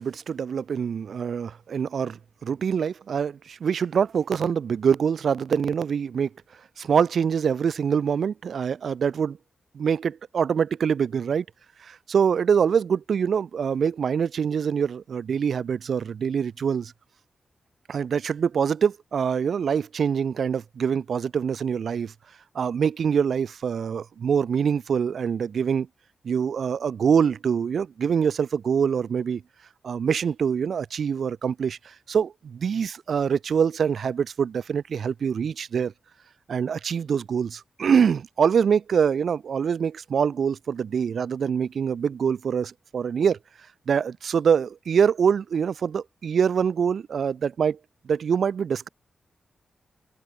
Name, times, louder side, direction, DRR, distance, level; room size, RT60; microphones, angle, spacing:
voice 1, 0.0-6.3 6.8-9.4 9.7-11.4 11.8-16.9 17.9-22.1 22.5-25.9 26.2-29.4 29.8-35.9 36.5-43.4 43.9-47.8 48.0-48.9, right 7 dB, 70° right, 6.3 m, -24 dB
open air
wide cardioid pair, 105°, 0 cm